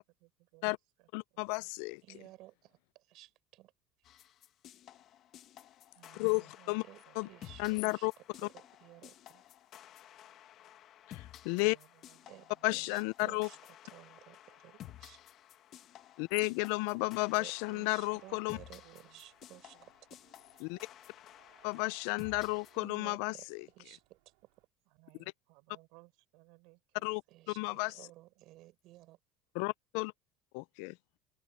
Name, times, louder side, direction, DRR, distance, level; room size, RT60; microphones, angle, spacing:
voice 1, 0.2-0.7 1.0-1.4 5.9-8.0 11.5-13.1 17.0-17.1 18.7-19.2 19.7-19.9 24.9-27.4 27.6-28.1 28.4-28.5, right 26 dB, 70° right, 3.9 m, -64 dB
voice 2, 1.1-2.0 6.1-6.8 7.2-7.3 7.6-8.1 11.1-11.8 12.6-13.5 16.2-18.6 20.6-20.8 21.6-23.6 27.0-27.2 27.6-27.9 29.6-30.1 30.5-31.0, left 28 dB, 70° left, 0.3 m, -33 dB
voice 3, 2.0-3.7 6.8-9.4 12.3-13.6 13.8-15.2 17.3-20.2 22.7-24.2 27.3-29.2, right 17 dB, 55° right, 7.0 m, -55 dB
sound 1, 4.0-22.8, left 12 dB, 40° left, 1.4 m, -54 dB
sound 2, 16.7-24.7, right 26 dB, 90° right, 4.4 m, -67 dB
cardioid pair, 155°, 0 cm